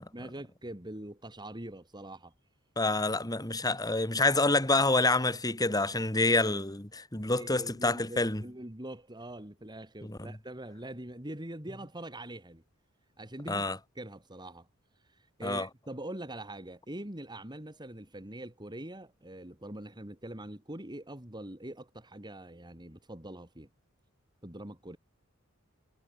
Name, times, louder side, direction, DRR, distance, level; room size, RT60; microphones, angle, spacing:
voice 1, 0.0-2.3 7.4-12.6 13.2-13.6 13.9-14.7 15.1-23.7 24.4-25.0, right 1 dB, 20° right, 3.2 m, -43 dB
voice 2, 2.8-8.4 10.0-10.3 13.5-13.8 15.4-15.7, left 2 dB, 20° left, 3.0 m, -27 dB
head